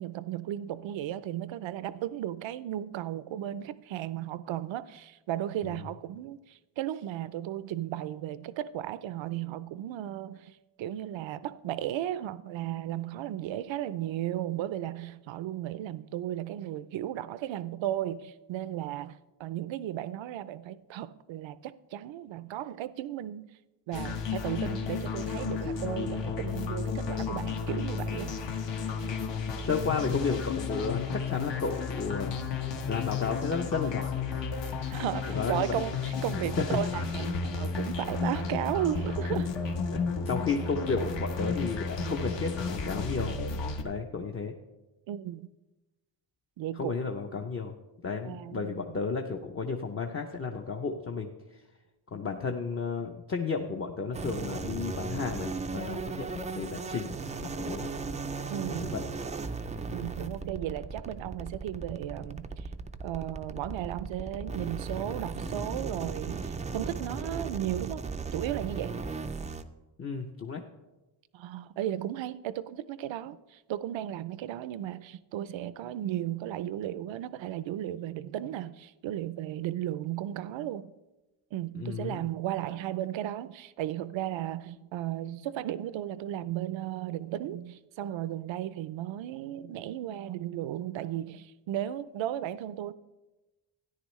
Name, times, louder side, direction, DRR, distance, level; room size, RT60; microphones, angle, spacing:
voice 1, 0.0-23.5 23.9-28.3 34.9-39.5 45.1-45.5 46.6-46.9 48.2-48.8 58.5-59.0 59.9-62.7 63.0-69.0 71.3-80.9 81.5-92.9, right 12 dB, 70° right, 0.6 m, -35 dB
sound 1, 23.9-43.8, left 5 dB, 65° left, 1.1 m, -33 dB
voice 2, 29.7-32.4 32.9-34.1 35.4-35.9 36.3-36.7 37.7-37.8 39.3-39.4 39.9-43.4 43.8-44.5 46.7-47.7 48.0-51.3 52.1-57.1 57.4-57.9 58.7-59.0 70.0-70.6 81.7-82.2, left 4 dB, 30° left, 0.6 m, -33 dB
sound 2, 54.1-69.6, right 4 dB, 15° right, 0.3 m, -37 dB
13.5 x 10.0 x 3.1 m
cardioid pair, 120°, 47 cm